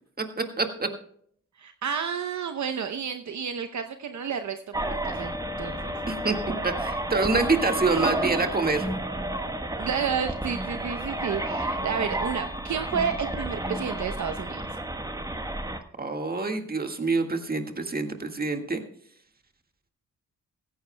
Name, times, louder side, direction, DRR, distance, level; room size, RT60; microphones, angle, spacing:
voice 1, 0.2-0.9 6.1-6.4 6.6-8.9 16.0-18.8, right 3 dB, 30° right, 5 dB, 1.8 m, -26 dB
voice 2, 1.6-5.3 5.6-5.9 7.9-8.1 9.8-14.6, right 7 dB, 60° right, 7 dB, 0.8 m, -31 dB
sound 1, 4.7-15.8, right 1 dB, 10° right, 1.2 m, -31 dB
15.5 x 15.0 x 2.2 m, 0.62 s
cardioid pair, 90°, 32 cm